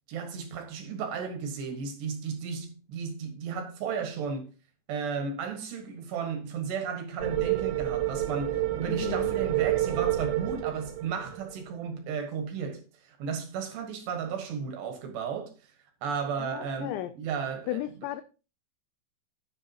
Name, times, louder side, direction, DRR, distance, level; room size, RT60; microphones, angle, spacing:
voice 1, 0.1-4.5 4.9-15.5 16.0-17.8, right 6 dB, 65° right, 3.3 m, -34 dB
sound 1, 7.2-11.6, right 13 dB, 85° right, 4.2 m, -29 dB
voice 2, 8.9-9.3 16.4-17.1 17.7-18.2, left 13 dB, 90° left, 2.6 m, -34 dB
11.0 x 10.5 x 2.9 m
omnidirectional pair, 5.9 m